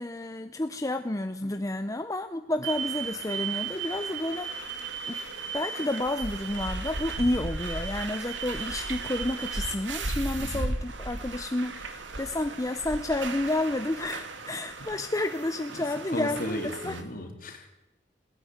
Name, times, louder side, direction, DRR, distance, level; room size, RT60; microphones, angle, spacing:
voice 1, 0.0-4.5 5.1-5.2 5.5-17.0, left 1 dB, 20° left, 8 dB, 0.7 m, -30 dB
sound 1, 2.6-17.0, right 4 dB, 90° right, 2.3 m, -35 dB
voice 2, 16.1-17.7, left 1 dB, 50° left, 3 dB, 4.0 m, -36 dB
19.0 x 17.0 x 9.6 m, 0.95 s
head